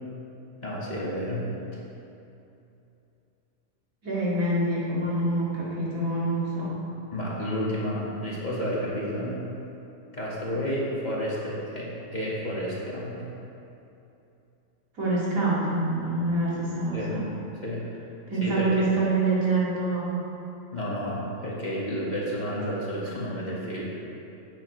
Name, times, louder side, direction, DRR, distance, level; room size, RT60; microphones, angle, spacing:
voice 1, 0.6-1.5 1.7-1.8 7.1-9.4 10.1-13.2 16.9-17.2 17.6-17.8 18.4-18.9 20.7-23.9, equal, 30° left, -6 dB, 1.8 m, -31 dB
voice 2, 4.0-6.8 14.9-17.3 18.3-20.2, right 2 dB, 80° right, -8 dB, 2.7 m, -26 dB
11.5 x 8.8 x 3.2 m, 2.8 s
omnidirectional pair, 1.4 m